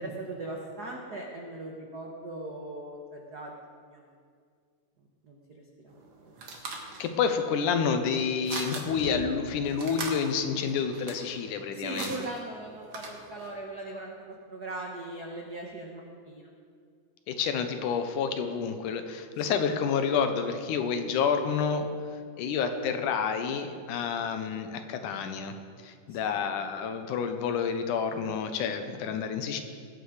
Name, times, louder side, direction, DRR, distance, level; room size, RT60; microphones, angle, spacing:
voice 1, 0.0-4.0 5.2-5.4 5.8-6.3 11.7-16.5 19.5-19.6 26.1-26.4, right 2 dB, 70° right, -1 dB, 0.9 m, -39 dB
sound 1, 5.9-13.6, right 3 dB, 50° right, 1.8 m, -41 dB
voice 2, 6.7-12.1 17.3-21.9 22.4-25.6 25.8-29.6, left 6 dB, 90° left, 7 dB, 2.4 m, -29 dB
19.5 x 8.3 x 5.0 m, 2.1 s
omnidirectional pair, 3.6 m